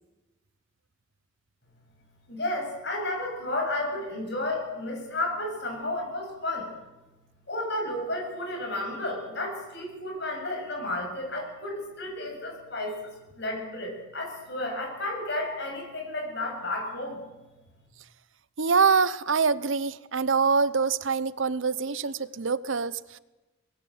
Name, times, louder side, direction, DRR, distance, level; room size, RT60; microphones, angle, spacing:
voice 1, 2.3-6.7 7.5-13.1 13.4-17.2, left 1 dB, 55° left, 2 dB, 7.9 m, -32 dB
voice 2, 18.6-23.2, right 5 dB, 70° right, 17 dB, 0.8 m, -25 dB
25.0 x 20.0 x 7.9 m, 1.1 s
head